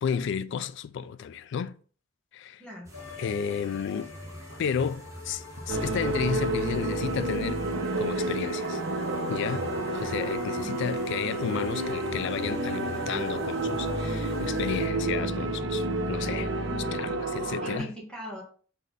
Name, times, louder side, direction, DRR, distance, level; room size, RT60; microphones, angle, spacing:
voice 1, 0.0-1.7 2.3-2.6 3.2-4.1 4.6-7.6 8.0-8.8 9.3-16.5 16.8-17.9, left 7 dB, 60° left, 0.3 m, -32 dB
voice 2, 2.6-2.9 17.6-18.4, equal, 5° left, 1.1 m, -40 dB
sound 1, 2.8-14.9, equal, 15° right, 0.9 m, -47 dB
sound 2, 2.9-15.1, left 3 dB, 80° left, 0.9 m, -47 dB
sound 3, 5.7-17.8, right 2 dB, 65° right, 0.7 m, -30 dB
3.7 x 3.2 x 4.0 m
head